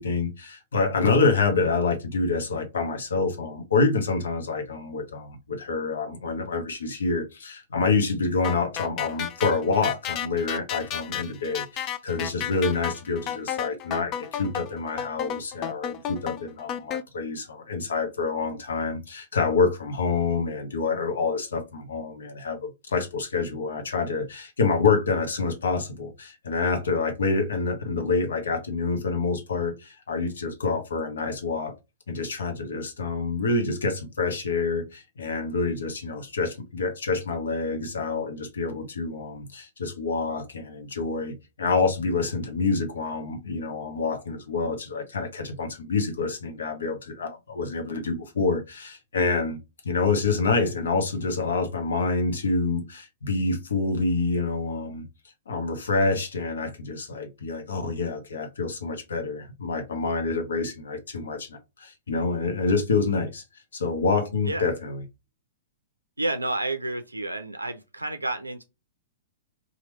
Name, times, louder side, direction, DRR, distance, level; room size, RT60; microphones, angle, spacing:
voice 1, 0.0-31.7 32.1-49.6 49.8-55.1 55.5-63.4 63.7-65.0, left 4 dB, 70° left, 0.8 m, -27 dB
sound 1, 8.4-17.0, left 10 dB, 30° left, 0.4 m, -32 dB
voice 2, 66.2-68.6, right 2 dB, 90° right, 0.4 m, -30 dB
3.0 x 2.4 x 3.0 m
figure-of-eight pair, 110°, 0 cm